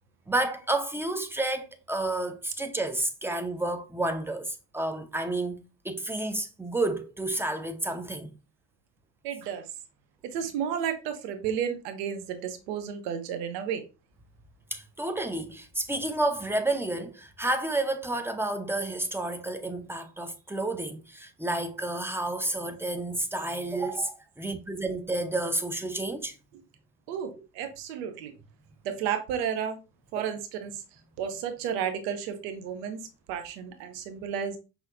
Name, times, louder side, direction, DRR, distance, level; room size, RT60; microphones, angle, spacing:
voice 1, 0.3-8.3 14.7-26.3, right 2 dB, 5° right, 0.7 m, -30 dB
voice 2, 9.2-9.6 10.2-13.8 27.1-28.3 28.8-29.8 30.1-30.8 31.2-34.6, right 8 dB, 75° right, 0.8 m, -32 dB
5.6 x 2.8 x 2.5 m
hypercardioid pair, 50°, 47 cm